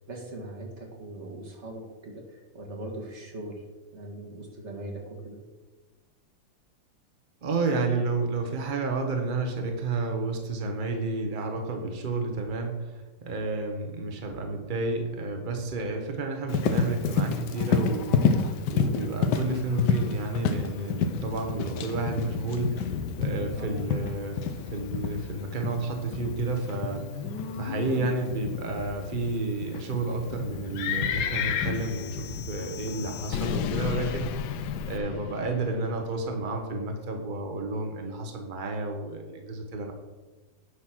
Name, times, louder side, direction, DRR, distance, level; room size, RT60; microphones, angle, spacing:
voice 1, 0.1-3.7 3.9-5.4 23.6-23.8, right 1 dB, 35° right, 1 dB, 1.8 m, -40 dB
voice 2, 7.4-24.4 24.7-27.1 27.6-34.5 34.9-39.9, right 3 dB, 60° right, 3 dB, 0.5 m, -31 dB
Livestock farm animals working animals, 16.5-35.0, left 5 dB, 65° left, 1.2 m, -30 dB
sound 1, 31.7-36.1, left 7 dB, 90° left, 0.9 m, -34 dB
9.9 x 4.9 x 6.0 m, 1.2 s
omnidirectional pair, 2.4 m